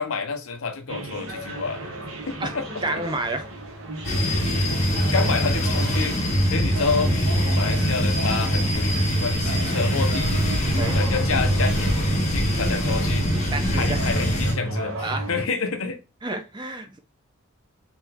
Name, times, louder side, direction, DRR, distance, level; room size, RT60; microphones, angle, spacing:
voice 1, 0.0-1.9 2.3-2.8 4.5-4.7 5.0-13.3 13.7-16.0, left 4 dB, 80° left, 0.7 m, -29 dB
sound 1, 0.9-15.5, right 1 dB, 75° right, 1.4 m, -34 dB
voice 2, 2.8-3.5 5.1-5.3 10.8-11.0 13.5-14.0 15.0-15.3 16.2-17.0, right 2 dB, 20° right, 0.5 m, -30 dB
sound 2, 4.0-14.5, equal, 35° left, 0.7 m, -23 dB
3.4 x 2.6 x 3.5 m
head